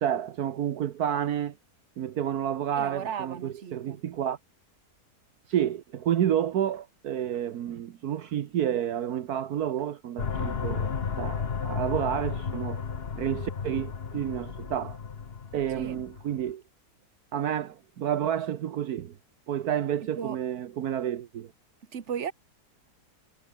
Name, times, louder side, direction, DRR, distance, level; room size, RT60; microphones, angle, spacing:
voice 1, 0.0-1.6 2.0-4.4 5.5-12.8 13.2-15.0 15.5-16.6 17.3-19.1 19.5-21.5, right 10 dB, 70° right, 1.4 m, -30 dB
voice 2, 2.7-4.0 15.7-16.0 20.2-20.4 21.9-22.3, right 8 dB, 45° right, 1.6 m, -35 dB
sound 1, 10.2-16.5, left 6 dB, 40° left, 1.3 m, -33 dB
omnidirectional pair, 1.7 m